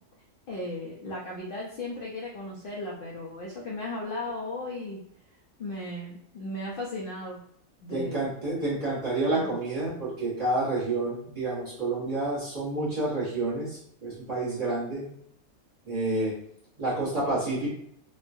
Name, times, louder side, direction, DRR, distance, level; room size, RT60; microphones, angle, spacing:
voice 1, 0.5-5.0 5.6-7.4 7.8-8.2 9.3-9.6, left 1 dB, 65° left, -3 dB, 0.5 m, -36 dB
voice 2, 7.9-15.1 15.9-16.4 16.8-17.7, right 2 dB, 30° right, -8 dB, 1.0 m, -29 dB
3.1 x 2.2 x 2.5 m, 0.69 s
omnidirectional pair, 1.5 m